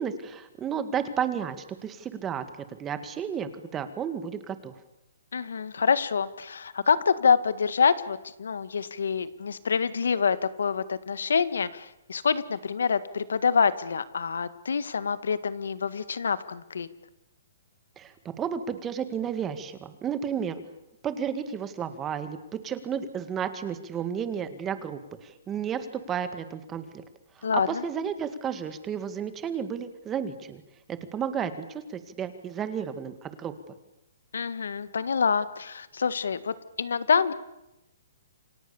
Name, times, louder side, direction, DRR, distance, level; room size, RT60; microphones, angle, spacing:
voice 1, 0.0-4.7 18.0-20.6 21.0-22.4 22.6-27.0 27.4-30.6 30.9-33.5, right 8 dB, 15° right, 10 dB, 2.0 m, -32 dB
voice 2, 5.3-16.9 27.4-27.8 34.3-37.3, left 6 dB, 90° left, 14 dB, 1.8 m, -26 dB
29.0 x 25.0 x 7.2 m, 0.91 s
hypercardioid pair, 160°, 0 cm